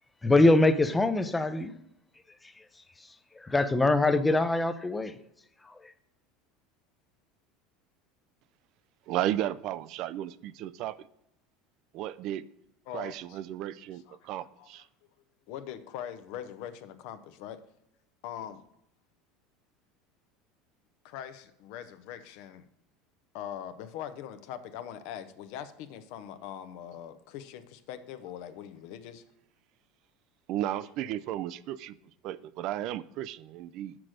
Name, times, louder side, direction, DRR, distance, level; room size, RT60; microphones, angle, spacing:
voice 1, 0.2-1.7 3.4-5.1 5.6-5.9, left 2 dB, 10° left, 0.5 m, -23 dB
voice 2, 9.1-11.1 11.9-12.4 12.9-14.9 30.5-32.0 32.2-34.0, right 12 dB, 55° right, 0.3 m, -34 dB
voice 3, 12.9-13.4 13.9-14.2 14.6-14.9 15.5-17.6 18.2-18.6 21.0-22.6 23.3-29.2, left 10 dB, 65° left, 0.7 m, -42 dB
6.3 x 6.0 x 4.9 m
supercardioid pair, 135°, 0 cm